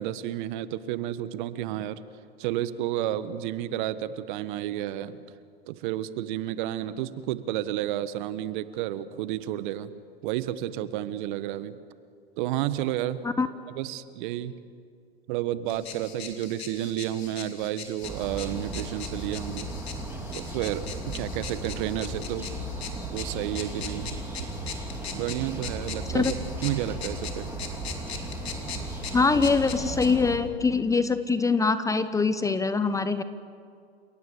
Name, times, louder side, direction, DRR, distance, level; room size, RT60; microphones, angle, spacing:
voice 1, 0.0-2.0 2.4-5.2 5.7-9.9 10.2-11.8 12.4-13.2 13.7-14.5 15.3-19.7 20.3-22.5 23.1-24.1 25.1-26.4 26.6-27.5, right 13 dB, 50° right, 14 dB, 1.3 m, -31 dB
sound 1, 15.7-30.1, left 6 dB, 75° left, 3.6 m, -41 dB
sound 2, 18.0-30.4, right 2 dB, 5° right, 3.7 m, -36 dB
voice 2, 29.1-33.2, left 4 dB, 10° left, 12 dB, 0.9 m, -23 dB
29.5 x 17.5 x 8.4 m, 2.2 s
hypercardioid pair, 110°, 31 cm